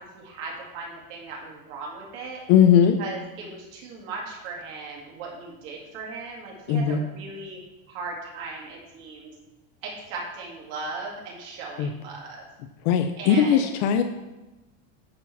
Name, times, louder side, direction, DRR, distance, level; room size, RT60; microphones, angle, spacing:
voice 1, 0.0-2.4 3.0-7.6 7.9-9.3 9.8-12.5 13.2-13.7, right 3 dB, 50° right, -2 dB, 2.3 m, -37 dB
voice 2, 2.5-3.0 6.7-7.0 11.8-11.9 12.8-14.0, left 8 dB, 35° left, 7 dB, 0.4 m, -19 dB
9.4 x 4.9 x 7.1 m, 1.1 s
supercardioid pair, 175°, 39 cm